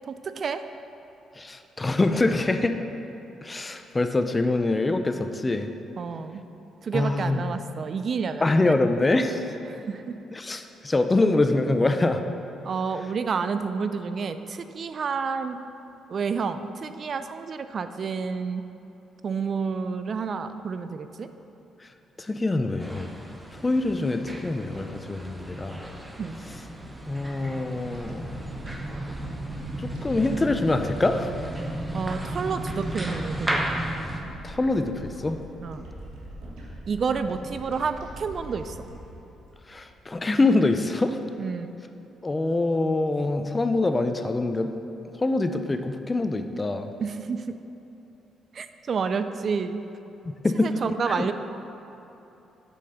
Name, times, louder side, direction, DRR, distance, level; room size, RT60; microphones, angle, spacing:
voice 1, 0.1-0.6 6.0-6.4 6.8-8.8 9.7-10.2 12.6-15.6 16.1-18.6 19.2-21.3 26.2-26.4 31.9-33.7 35.6-35.9 36.9-38.8 41.4-41.8 47.0-47.6 48.5-49.8 50.6-51.3, right 5 dB, 50° right, 10 dB, 0.4 m, -29 dB
voice 2, 1.4-2.8 3.4-5.7 6.9-7.4 8.4-9.6 10.3-12.2 22.2-23.1 23.5-25.8 27.1-28.3 29.8-31.3 34.4-35.4 39.7-41.2 42.2-44.7 45.2-46.9 50.2-50.7 51.1-51.3, left 2 dB, 20° left, 7 dB, 0.5 m, -24 dB
sound 1, 22.8-34.2, right 1 dB, 15° right, 0.9 m, -34 dB
sound 2, 27.9-40.4, right 1 dB, 85° right, 1.6 m, -42 dB
8.4 x 5.3 x 5.7 m, 3.0 s
cardioid pair, 90°, 0 cm